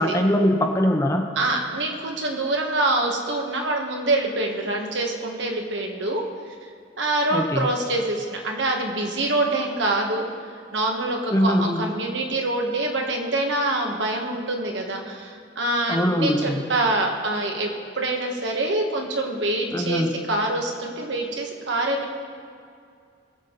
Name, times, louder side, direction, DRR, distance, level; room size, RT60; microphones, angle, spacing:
voice 1, 0.0-1.3 7.3-7.7 11.3-11.8 15.9-16.6 19.7-20.1, equal, 15° left, 3 dB, 0.9 m, -22 dB
voice 2, 1.3-6.2 7.0-10.3 10.7-17.7 18.0-22.2, right 2 dB, 70° right, 1 dB, 1.6 m, -25 dB
21.0 x 7.2 x 4.0 m, 2.3 s
head